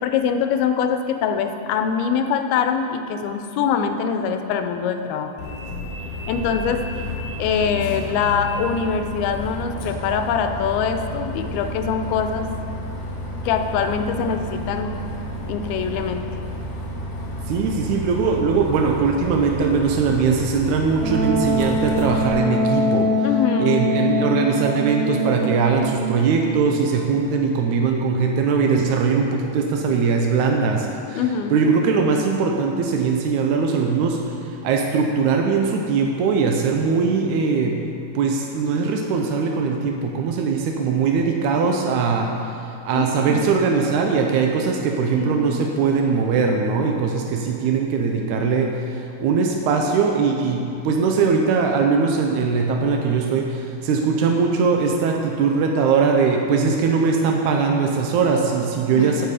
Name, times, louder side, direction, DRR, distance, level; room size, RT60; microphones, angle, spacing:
voice 1, 0.0-5.3 6.3-6.8 7.4-12.5 13.4-15.0 15.5-16.3 23.2-23.8 31.2-31.5 42.9-43.5 45.1-45.6 59.0-59.1, left 6 dB, 85° left, 7 dB, 2.6 m, -23 dB
Bus, 5.4-22.3, equal, 60° left, 2.5 m, -31 dB
voice 2, 17.5-23.1 23.6-31.2 31.5-37.8 38.1-42.6 42.8-59.2, right 5 dB, 80° right, 2 dB, 1.7 m, -21 dB
Wind instrument woodwind instrument, 21.0-26.5, left 1 dB, 55° right, 4.1 m, -23 dB
16.0 x 6.7 x 5.0 m, 2.7 s
omnidirectional pair, 4.3 m